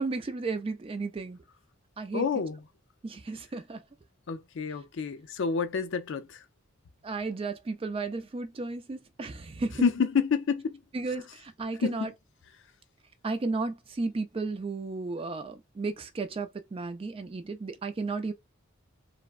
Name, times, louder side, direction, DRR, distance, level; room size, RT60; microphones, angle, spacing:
voice 1, 0.0-1.4 2.0-2.2 3.0-3.8 7.0-9.9 10.9-12.1 13.2-18.3, right 3 dB, 25° right, 0.3 m, -33 dB
voice 2, 2.1-2.6 4.3-6.4 9.8-10.8 11.8-12.1, left 5 dB, 60° left, 0.4 m, -28 dB
3.3 x 2.1 x 2.3 m
head